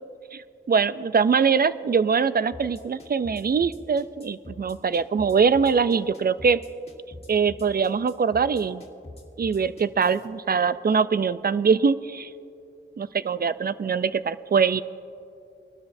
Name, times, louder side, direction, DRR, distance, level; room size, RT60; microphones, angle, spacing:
voice 1, 0.7-6.6 7.3-8.8 9.4-12.3 13.0-14.8, right 5 dB, 50° right, 15 dB, 0.4 m, -23 dB
sound 1, 2.5-10.3, left 1 dB, 30° left, 1.8 m, -44 dB
21.0 x 12.5 x 2.6 m, 2.6 s
wide cardioid pair, 60°, 20 cm